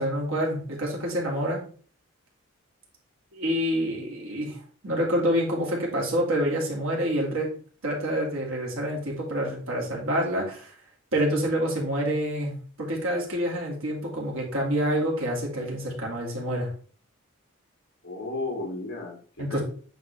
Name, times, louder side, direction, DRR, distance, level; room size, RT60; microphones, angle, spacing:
voice 1, 0.0-1.6 3.3-4.6 4.8-7.5 7.8-10.7 11.1-16.7 19.4-19.6, equal, 75° right, -2 dB, 2.4 m, -27 dB
voice 2, 18.0-19.6, left 2 dB, 50° left, -2 dB, 2.8 m, -34 dB
9.2 x 3.9 x 3.4 m, 0.44 s
head